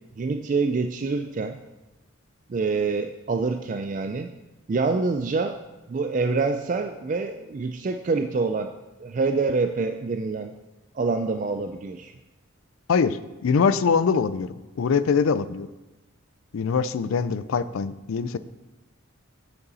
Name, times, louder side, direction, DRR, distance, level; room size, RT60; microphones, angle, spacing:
voice 1, 0.2-1.6 2.5-4.3 4.7-5.6 5.9-8.7 9.0-10.5 10.9-12.1, right 4 dB, 40° right, 6 dB, 0.3 m, -26 dB
voice 2, 12.9-14.5 14.8-15.7 16.5-18.4, left 5 dB, 75° left, 14 dB, 0.4 m, -23 dB
8.0 x 6.8 x 4.1 m, 1.1 s
head